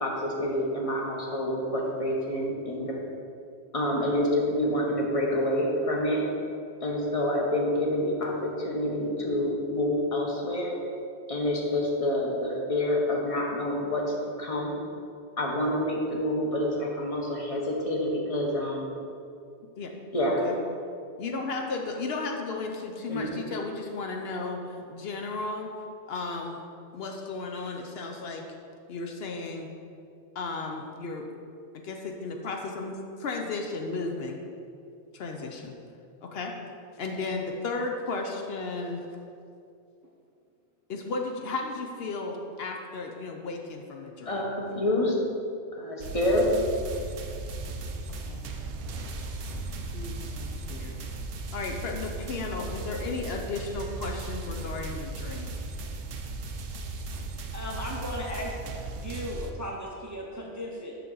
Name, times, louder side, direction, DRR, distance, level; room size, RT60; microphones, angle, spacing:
voice 1, 0.0-3.1 3.7-6.2 6.8-10.7 11.3-14.0 14.4-14.8 15.4-18.9 20.1-20.4 23.1-23.4 44.3-45.2 45.8-46.5, left 1 dB, 35° left, -2 dB, 1.0 m, -27 dB
voice 2, 21.2-26.6 26.9-28.4 28.9-29.7 30.3-31.2 31.9-32.0 32.2-34.4 35.1-35.7 36.2-36.6 37.0-39.1 40.9-44.4 48.2-48.4 49.9-51.0 51.5-55.5, left 3 dB, 65° left, 2 dB, 0.8 m, -34 dB
sound 1, 46.0-59.5, right 2 dB, 80° right, 0.9 m, -36 dB
voice 3, 57.5-61.0, equal, 25° right, -2 dB, 0.5 m, -36 dB
6.9 x 5.9 x 3.8 m, 2.5 s
omnidirectional pair, 1.1 m